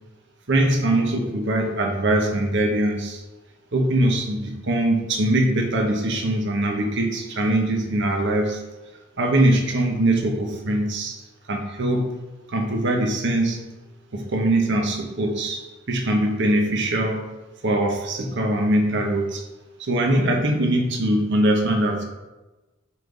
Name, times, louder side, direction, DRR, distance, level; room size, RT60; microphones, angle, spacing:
voice 1, 0.5-3.2 3.7-8.6 9.2-11.2 11.5-12.1 12.5-13.6 14.1-17.2 17.6-19.4 19.8-22.0, right 1 dB, 60° right, 2 dB, 1.0 m, -22 dB
5.8 x 5.2 x 3.9 m, 1.1 s
head